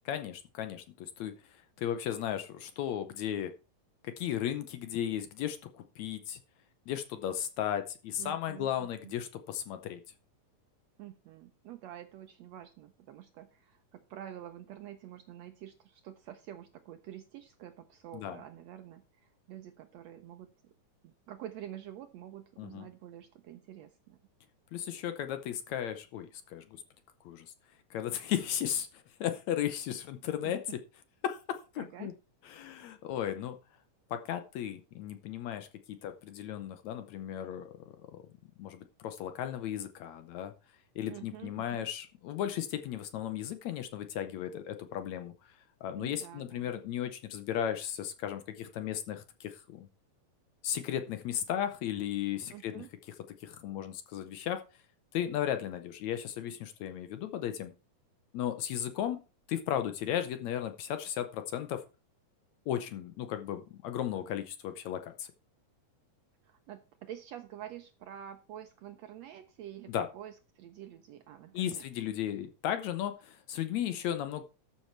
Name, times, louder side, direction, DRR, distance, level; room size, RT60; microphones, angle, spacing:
voice 1, 0.1-3.5 4.0-6.4 6.9-10.0 18.1-18.4 22.6-22.9 24.7-26.8 27.3-27.5 27.9-30.6 31.2-32.1 32.5-33.6 34.1-37.7 38.6-40.5 41.0-45.3 45.8-49.9 50.6-52.8 53.4-54.6 55.1-57.7 58.3-59.2 59.5-61.8 62.7-65.3 69.9-70.1 71.5-74.4, left 10 dB, 75° left, 9 dB, 1.9 m, -35 dB
voice 2, 8.2-9.1 11.0-20.7 21.0-24.2 30.4-30.8 31.8-32.1 41.1-41.9 46.0-46.7 52.5-52.9 66.4-71.9, right 11 dB, 75° right, 9 dB, 1.6 m, -48 dB
13.0 x 6.4 x 4.4 m, 0.32 s
omnidirectional pair, 3.7 m